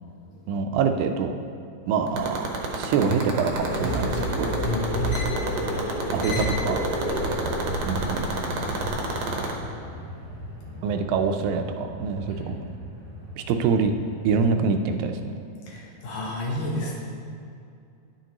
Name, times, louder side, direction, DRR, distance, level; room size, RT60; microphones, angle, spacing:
voice 1, 0.5-1.4 1.9-4.5 6.1-6.9 7.8-8.3 10.8-12.6 13.5-13.9 14.2-15.3, right 5 dB, 85° right, 6 dB, 2.2 m, -25 dB
sound 1, 2.1-9.5, right 6 dB, 70° right, 1.8 m, -28 dB
sound 2, 3.5-8.9, equal, 40° left, 1.9 m, -29 dB
voice 2, 4.6-5.1 10.7-10.8 12.3-12.5 15.7-17.0, left 2 dB, 70° left, -3 dB, 1.9 m, -31 dB
sound 3, 6.9-14.5, left 1 dB, 20° right, 0.9 m, -39 dB
10.5 x 7.6 x 2.9 m, 2.5 s
omnidirectional pair, 4.1 m